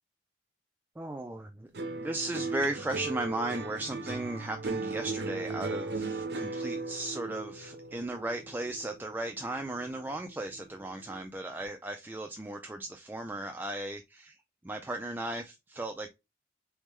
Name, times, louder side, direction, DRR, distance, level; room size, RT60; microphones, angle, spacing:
voice 1, 1.0-14.4 14.6-16.1, right 2 dB, 10° right, 0.3 m, -36 dB
sound 1, 1.7-10.2 10.5-11.2, right 3 dB, 65° right, 0.7 m, -37 dB
4.0 x 3.6 x 3.1 m
head